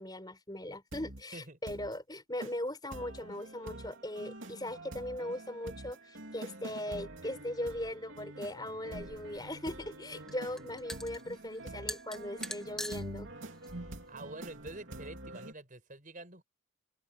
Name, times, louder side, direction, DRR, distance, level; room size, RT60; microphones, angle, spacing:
voice 1, 0.0-13.3, left 1 dB, 20° left, 4.6 m, -39 dB
sound 1, 0.9-1.2 1.7-1.9 2.4-2.5 2.9-15.5, right 1 dB, 65° right, 3.0 m, -46 dB
sound 2, 8.9-15.1, left 1 dB, 5° left, 1.2 m, -46 dB
voice 2, 14.1-16.4, right 2 dB, 40° right, 5.0 m, -46 dB
open air
head